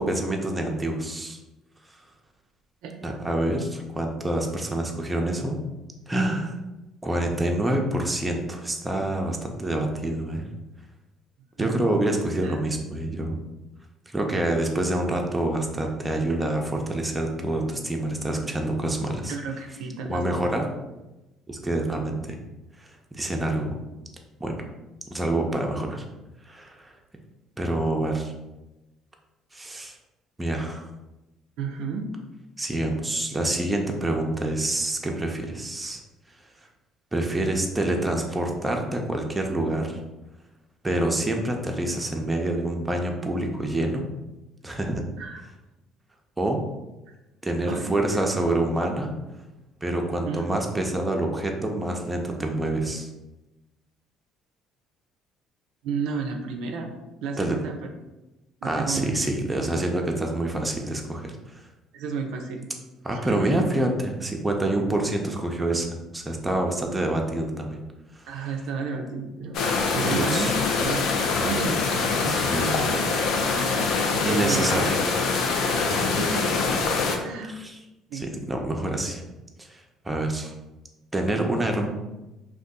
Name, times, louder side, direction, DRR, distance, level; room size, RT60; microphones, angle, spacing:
voice 1, 0.0-1.4 3.0-5.6 6.1-6.5 7.0-10.5 11.6-13.4 14.1-19.4 20.1-20.6 21.5-22.4 22.8-22.9 23.1-23.7 24.4-24.7 25.1-26.0 26.5-26.9 27.6-28.3 29.5-30.0 30.4-30.9 32.6-36.0 37.1-40.0 40.8-44.0 44.6-45.0 46.4-46.6 47.4-49.1 49.8-53.1 57.4-57.6 58.6-61.6 63.0-65.9 66.1-67.8 68.2-68.3 69.8-70.5 71.3-71.7 72.1-72.9 74.2-75.0 75.9-76.2 77.6-77.8 78.1-79.2 79.6-80.5 81.1-81.9, right 1 dB, 15° right, 2 dB, 0.5 m, -27 dB
voice 2, 2.8-3.2 11.6-11.8 12.4-12.6 19.3-20.5 31.6-32.1 45.2-45.4 47.7-48.3 50.3-50.4 55.8-56.9 57.2-57.7 58.6-59.1 61.9-62.7 63.1-63.6 68.3-69.7 69.9-71.0 71.4-71.8 74.1-74.8 75.9-76.6 77.2-77.6 78.1-78.3, right 5 dB, 75° right, 4 dB, 0.4 m, -32 dB
sound 1, 69.5-77.2, left 4 dB, 70° left, 0.5 m, -24 dB
2.5 x 2.3 x 3.6 m, 1.0 s
supercardioid pair, 85°, 0 cm